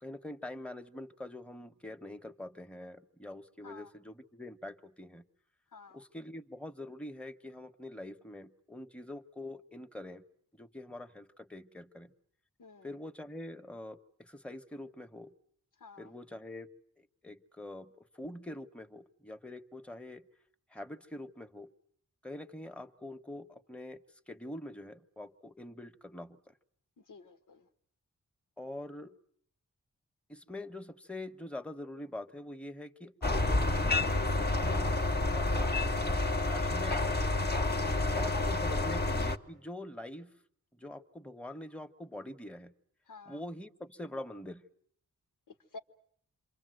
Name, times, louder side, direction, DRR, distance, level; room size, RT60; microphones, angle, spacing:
voice 1, 0.0-5.2 5.9-10.2 10.6-12.1 12.8-15.3 16.0-16.7 17.2-17.9 18.2-20.2 20.7-21.7 22.2-24.0 24.3-26.5 28.6-29.1 30.3-37.2 37.9-40.3 40.8-42.7 43.3-44.6, left 1 dB, 5° left, 8 dB, 1.2 m, -45 dB
voice 2, 5.7-6.0 12.6-12.9 15.8-16.1 27.1-27.7 37.6-38.9 43.1-43.4 45.7-45.8, left 4 dB, 85° left, 4 dB, 1.6 m, -50 dB
sound 1, 33.2-39.4, left 2 dB, 30° left, 1.3 m, -29 dB
27.5 x 24.5 x 7.9 m, 0.66 s
cardioid pair, 70°, 31 cm